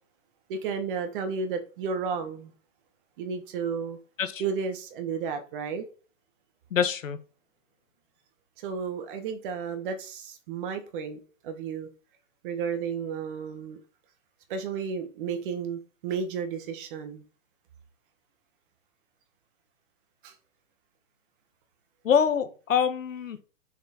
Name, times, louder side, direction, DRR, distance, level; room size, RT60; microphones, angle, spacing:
voice 1, 0.5-2.5 3.2-4.0 4.4-5.8 8.6-11.9 12.4-13.8 14.5-17.2 20.2-20.3, right 6 dB, 40° right, 1.6 m, -32 dB
voice 2, 6.7-7.2 22.0-23.4, left 7 dB, 70° left, 1.4 m, -25 dB
6.3 x 4.5 x 4.3 m
hypercardioid pair, 140°, 40 cm